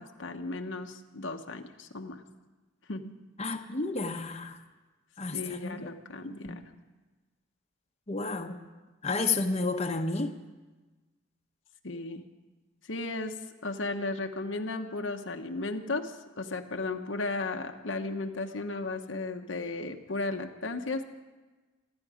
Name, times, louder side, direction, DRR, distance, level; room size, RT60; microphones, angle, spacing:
voice 1, 0.0-2.2 2.9-3.2 5.3-6.7 11.8-12.2 12.8-21.1, left 2 dB, 80° left, 5 dB, 1.1 m, -35 dB
voice 2, 3.4-4.6 5.2-5.9 6.2-6.6 8.1-8.6 9.0-10.3, left 3 dB, 35° left, 4 dB, 1.0 m, -31 dB
27.0 x 10.5 x 5.1 m, 1.2 s
head